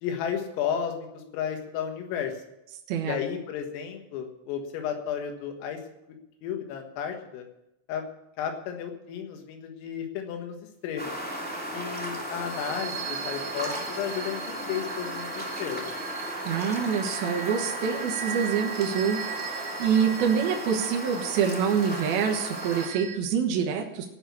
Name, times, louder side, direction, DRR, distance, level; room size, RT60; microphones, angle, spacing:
voice 1, 0.0-2.3 3.1-5.8 6.4-7.5 7.9-8.0 8.4-10.6 10.8-11.2 11.7-15.9, left 8 dB, 85° left, 4 dB, 4.2 m, -33 dB
sound 1, 11.0-22.9, equal, 5° left, 1.0 m, -35 dB
sound 2, 12.0-23.2, right 9 dB, 85° right, 3.8 m, -39 dB
voice 2, 16.4-19.2 19.5-24.1, right 7 dB, 65° right, 1 dB, 2.6 m, -26 dB
17.0 x 6.1 x 8.5 m, 0.88 s
omnidirectional pair, 5.8 m